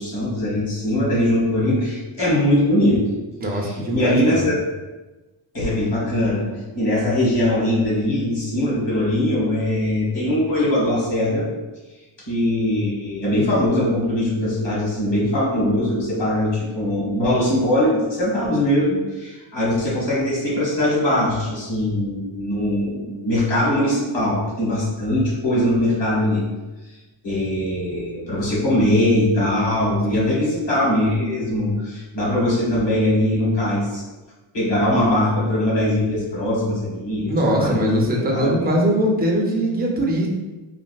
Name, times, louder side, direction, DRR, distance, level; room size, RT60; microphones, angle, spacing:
voice 1, 0.0-3.1 3.6-4.6 5.5-11.5 12.3-26.4 27.2-34.0 34.5-37.3 37.6-38.0 38.3-38.5, left 1 dB, 60° left, -5 dB, 1.4 m, -21 dB
voice 2, 3.4-4.5 30.1-30.3 37.3-40.3, equal, 20° right, -1 dB, 0.3 m, -21 dB
3.4 x 2.5 x 2.2 m, 1.2 s
cardioid pair, 145°, 49 cm